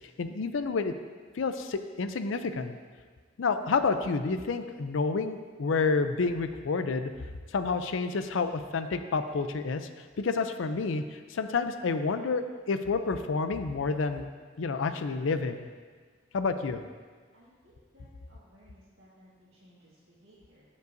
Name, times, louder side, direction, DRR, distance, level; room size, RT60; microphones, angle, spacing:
voice 1, 0.2-0.9 1.4-2.8 3.4-7.1 7.5-9.9 10.2-14.3 14.6-15.7 16.3-16.8, left 4 dB, 75° left, 9 dB, 0.5 m, -29 dB
voice 2, 17.3-20.6, equal, 80° right, -11 dB, 1.7 m, -60 dB
14.0 x 5.4 x 2.6 m, 1.6 s
head